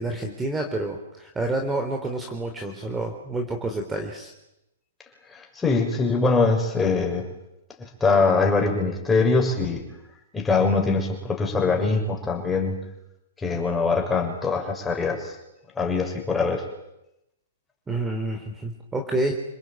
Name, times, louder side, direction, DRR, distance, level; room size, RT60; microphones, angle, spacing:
voice 1, 0.0-4.3 17.9-19.3, right 2 dB, 10° right, 4 dB, 3.4 m, -28 dB
voice 2, 5.3-7.3 7.8-9.8 10.3-12.8 13.4-15.4 15.8-16.6, left 4 dB, 10° left, 2 dB, 6.5 m, -23 dB
28.5 x 19.5 x 9.1 m, 0.87 s
hypercardioid pair, 125°, 0 cm